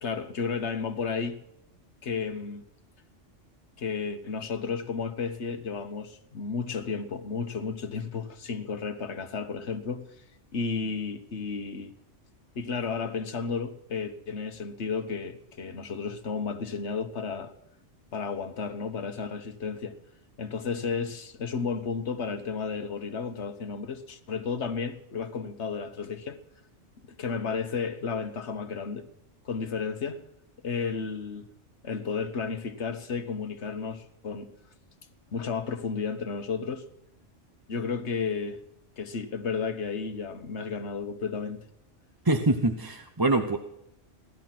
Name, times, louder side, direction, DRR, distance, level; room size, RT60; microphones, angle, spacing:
voice 1, 0.0-1.4 2.0-2.6 3.8-10.1 10.5-12.0 12.5-17.5 18.1-19.9 20.4-26.4 27.2-29.1 29.4-30.2 30.6-31.5 31.8-34.5 35.3-36.9 37.7-38.6 39.0-41.6, left 5 dB, 65° left, 1.6 m, -33 dB
voice 2, 42.2-43.6, right 2 dB, 20° right, 0.8 m, -24 dB
17.0 x 13.0 x 5.9 m
omnidirectional pair, 1.3 m